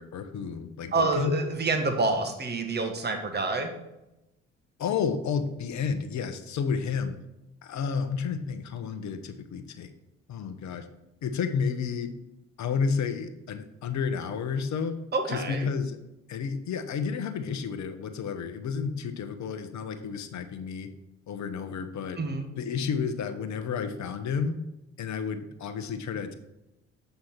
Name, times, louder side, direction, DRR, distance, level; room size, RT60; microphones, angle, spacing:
voice 1, 0.0-1.4 4.8-7.2 7.6-9.9 10.3-10.9 11.2-12.1 12.6-15.0 15.3-16.0 16.3-20.9 21.3-22.2 22.6-24.6 25.0-26.3, left 6 dB, 50° left, 9 dB, 1.0 m, -31 dB
voice 2, 0.9-3.7 15.1-15.7 22.2-22.5, right 3 dB, 30° right, 5 dB, 1.5 m, -27 dB
7.8 x 5.8 x 4.4 m, 0.92 s
hypercardioid pair, 55°, 36 cm